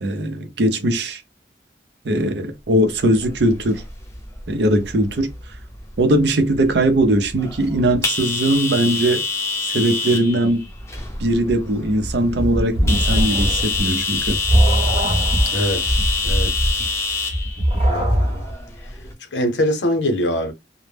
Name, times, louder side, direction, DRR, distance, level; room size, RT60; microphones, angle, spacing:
voice 1, 0.0-1.2 2.0-3.8 4.5-5.3 6.0-9.2 9.7-10.7 11.2-14.4, right 1 dB, 70° right, 0.5 m, -20 dB
sound 1, 3.0-19.1, left 4 dB, 15° left, 0.5 m, -27 dB
sound 2, 11.5-18.5, equal, 35° right, 0.8 m, -21 dB
voice 2, 15.5-16.0 16.2-16.7 17.9-18.4 19.3-20.5, left 1 dB, 90° left, 0.7 m, -23 dB
2.1 x 2.0 x 3.2 m
head